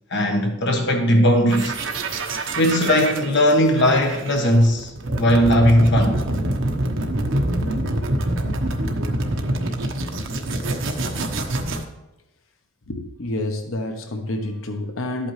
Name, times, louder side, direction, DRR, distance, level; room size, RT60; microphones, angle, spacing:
voice 1, 0.1-1.8 2.6-6.2, equal, 60° left, 1.3 m, -18 dB
sound 1, 1.5-11.8, right 1 dB, 65° right, 1.1 m, -25 dB
voice 2, 12.9-15.3, left 1 dB, 85° left, 1.0 m, -28 dB
12.0 x 8.6 x 3.2 m
head